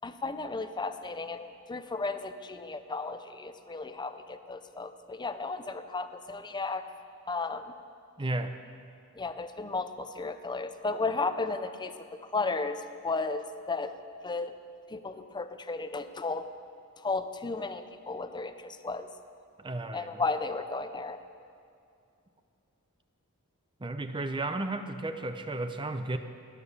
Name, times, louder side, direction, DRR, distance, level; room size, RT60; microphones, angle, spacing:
voice 1, 0.0-6.9 7.3-7.7 9.2-13.9 14.2-14.5 14.9-16.4 17.0-19.1 19.9-21.2, left 3 dB, 20° left, 10 dB, 0.6 m, -34 dB
voice 2, 8.2-8.6 19.6-20.1 23.8-26.2, right 2 dB, 20° right, 8 dB, 0.7 m, -33 dB
18.5 x 11.0 x 6.8 m, 2.5 s
head